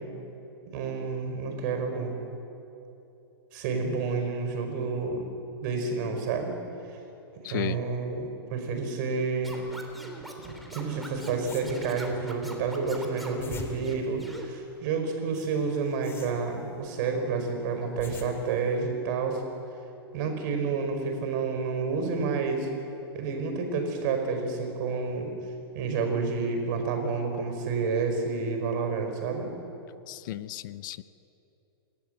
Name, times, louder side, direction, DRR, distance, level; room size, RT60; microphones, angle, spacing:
voice 1, 0.7-2.2 3.5-5.3 5.6-6.5 7.5-9.6 10.5-19.4 20.1-22.7 23.1-25.3 25.7-29.5, right 4 dB, 50° right, 5 dB, 5.0 m, -29 dB
voice 2, 7.4-7.8 30.1-31.0, left 15 dB, 50° left, 17 dB, 0.6 m, -34 dB
Scratching (performance technique), 9.4-13.4 13.8-14.5, equal, ahead, 3.0 m, -43 dB
sound 1, 11.1-12.2 13.1-14.8 15.3-16.9 17.7-18.7, left 3 dB, 20° left, 2.9 m, -44 dB
27.0 x 13.0 x 8.0 m, 2.8 s
hypercardioid pair, 120°, 13 cm